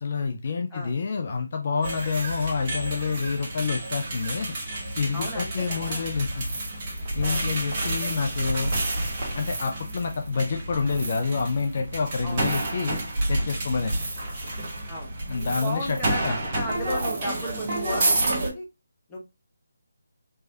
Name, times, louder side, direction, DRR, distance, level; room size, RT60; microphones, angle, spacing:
voice 1, 0.0-4.5 4.9-6.4 7.1-8.7 9.3-13.0 13.3-14.0 15.3-16.4, left 5 dB, 45° left, 4 dB, 0.5 m, -28 dB
sound 1, 1.8-18.5, right 2 dB, 30° right, 1.2 m, -29 dB
voice 2, 5.1-6.0 7.2-7.5 7.8-8.2 12.2-12.4 14.9-18.6 19.1-19.2, left 1 dB, 10° left, -5 dB, 1.1 m, -35 dB
3.3 x 3.2 x 2.8 m, 0.25 s
figure-of-eight pair, 150°, 0 cm